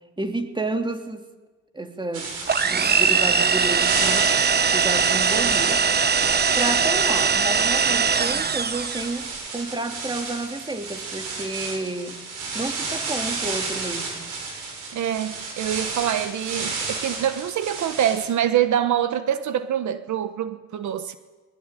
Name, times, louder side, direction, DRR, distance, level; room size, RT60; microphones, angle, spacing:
voice 1, 0.2-1.2 1.7-2.3 2.6-4.3 4.7-5.8 6.6-12.2 12.5-14.3, right 2 dB, 15° right, 5 dB, 2.8 m, -30 dB
sound 1, 2.1-18.3, right 4 dB, 85° right, 7.7 m, -32 dB
sound 2, 2.5-9.2, right 5 dB, 35° right, 1.2 m, -21 dB
voice 2, 14.9-21.2, right 10 dB, 70° right, 10 dB, 1.3 m, -25 dB
22.0 x 20.0 x 10.0 m, 1.3 s
cardioid pair, 90°, 30 cm